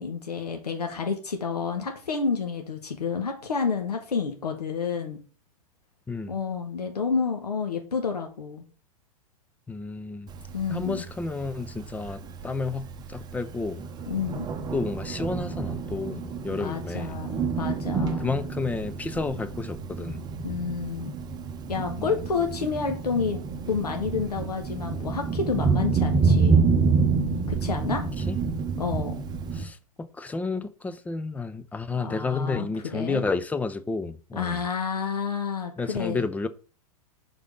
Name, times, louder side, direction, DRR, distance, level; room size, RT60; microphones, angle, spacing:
voice 1, 0.0-5.2 6.3-8.6 10.5-11.0 14.1-14.5 16.5-18.3 20.4-21.1 21.7-26.6 27.5-28.0 28.8-29.2 32.0-32.7 32.9-33.2 34.4-36.2, left 5 dB, 85° left, 1.1 m, -29 dB
voice 2, 6.1-6.4 9.7-10.3 10.7-13.9 14.7-17.1 18.2-20.2 22.0-22.1 28.2-28.4 29.5-34.6 35.8-36.5, left 3 dB, 10° left, 0.4 m, -31 dB
Thunder, 10.3-29.6, right 5 dB, 20° right, 0.8 m, -28 dB
4.9 x 3.8 x 5.2 m
hypercardioid pair, 110°, 20 cm